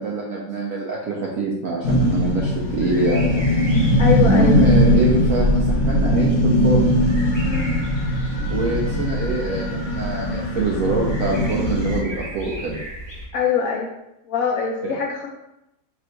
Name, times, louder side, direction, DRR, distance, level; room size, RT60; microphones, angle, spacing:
voice 1, 0.0-3.5 4.2-7.0 8.5-12.8 14.8-14.9, right 3 dB, 75° right, -3 dB, 0.8 m, -25 dB
sound 1, 1.8-12.0, left 1 dB, 60° left, 0.9 m, -19 dB
sound 2, 2.5-13.3, equal, 20° left, 0.7 m, -35 dB
voice 2, 4.0-4.6 7.4-7.7 13.3-13.9 14.3-15.3, left 6 dB, 90° left, -1 dB, 0.7 m, -23 dB
3.6 x 2.5 x 4.3 m, 0.88 s
omnidirectional pair, 2.0 m